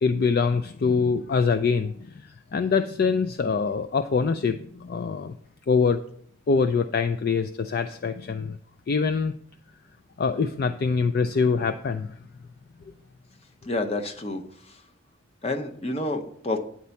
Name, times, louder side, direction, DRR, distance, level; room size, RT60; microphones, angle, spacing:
voice 1, 0.0-5.4 5.7-6.0 6.5-8.6 8.9-9.3 10.2-12.2, left 5 dB, 45° left, 10 dB, 0.3 m, -24 dB
voice 2, 13.7-14.4 15.4-16.6, left 2 dB, 30° left, 5 dB, 0.8 m, -28 dB
9.3 x 4.3 x 6.9 m, 0.63 s
head